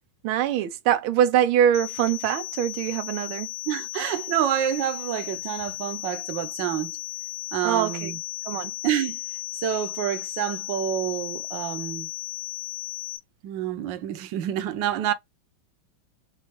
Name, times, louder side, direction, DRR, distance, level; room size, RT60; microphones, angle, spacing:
voice 1, 0.2-3.5 7.6-8.1 8.4-8.7, right 10 dB, 85° right, 1.5 m, -23 dB
sound 1, 1.7-13.2, left 20 dB, 85° left, 1.8 m, -35 dB
voice 2, 3.7-6.9 7.5-8.2 8.8-9.2 9.6-12.1 13.4-15.1, right 11 dB, 70° right, 1.4 m, -28 dB
6.5 x 2.4 x 2.9 m
omnidirectional pair, 2.2 m